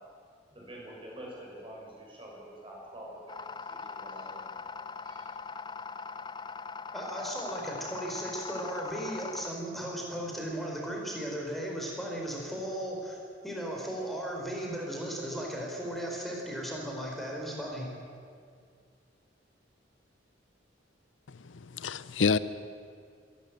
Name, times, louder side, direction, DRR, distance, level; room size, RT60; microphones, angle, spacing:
voice 1, 0.5-3.2 3.7-4.6 5.0-5.3, right 1 dB, 30° right, 6.8 m, -46 dB
sound 1, 3.3-9.5, left 5 dB, 25° left, 0.5 m, -41 dB
voice 2, 6.9-13.2 13.4-17.9, right 1 dB, ahead, 4.4 m, -36 dB
voice 3, 21.3-22.4, left 5 dB, 80° left, 0.7 m, -28 dB
25.5 x 12.0 x 9.2 m
head